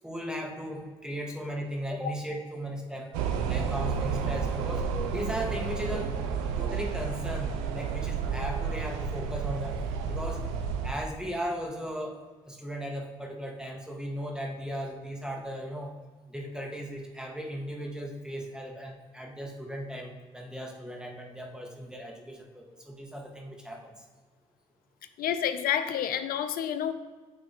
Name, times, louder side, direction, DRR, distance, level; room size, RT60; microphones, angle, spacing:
voice 1, 0.0-3.1 3.5-4.8 5.1-6.1 6.6-9.8 10.0-10.4 10.8-15.9 16.3-23.9, equal, 5° right, 0 dB, 1.9 m, -37 dB
sound 1, 3.1-10.9, right 6 dB, 90° right, 0.5 m, -31 dB
voice 2, 25.2-26.9, left 9 dB, 70° left, 10 dB, 0.6 m, -29 dB
8.9 x 3.4 x 4.4 m, 1.4 s
hypercardioid pair, 50°, 16 cm